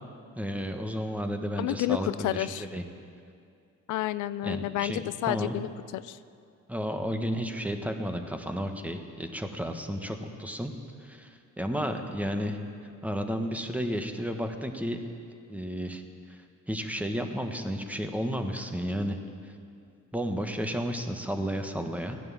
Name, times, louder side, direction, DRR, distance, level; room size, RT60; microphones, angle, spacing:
voice 1, 0.4-2.8 4.4-5.6 6.7-10.7 11.0-12.6 13.0-15.0 15.5-16.0 16.3-19.2 19.4-19.5 20.1-22.2, equal, 5° right, 5 dB, 1.3 m, -32 dB
voice 2, 1.6-2.7 3.9-6.2, left 14 dB, 80° left, 15 dB, 0.5 m, -30 dB
15.5 x 10.5 x 7.4 m, 2.3 s
cardioid pair, 90°, 30 cm